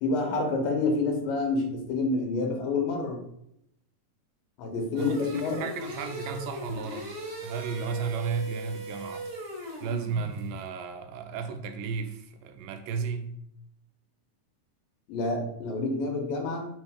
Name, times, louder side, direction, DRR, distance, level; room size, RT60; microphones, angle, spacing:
voice 1, 0.0-3.2 4.6-5.6 15.1-16.7, left 3 dB, 90° left, 2 dB, 2.9 m, -28 dB
voice 2, 4.9-7.1 7.4-9.3 9.8-13.4, right 5 dB, 90° right, 7 dB, 2.3 m, -34 dB
sound 1, 5.0-10.5, right 1 dB, 55° right, 2.4 m, -39 dB
6.1 x 3.1 x 5.0 m, 0.75 s
omnidirectional pair, 3.9 m